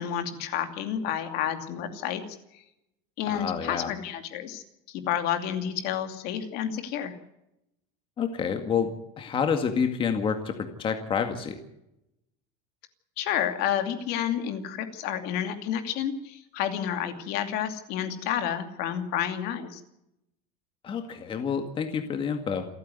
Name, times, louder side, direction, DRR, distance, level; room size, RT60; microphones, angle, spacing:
voice 1, 0.0-2.2 2.5-2.6 3.2-7.2 13.2-19.8, left 9 dB, 60° left, 7 dB, 2.7 m, -30 dB
voice 2, 3.3-3.9 8.2-8.9 9.2-11.6 20.8-22.7, left 6 dB, 30° left, 6 dB, 2.0 m, -28 dB
28.5 x 9.5 x 9.5 m, 0.86 s
cardioid pair, 150°, 18 cm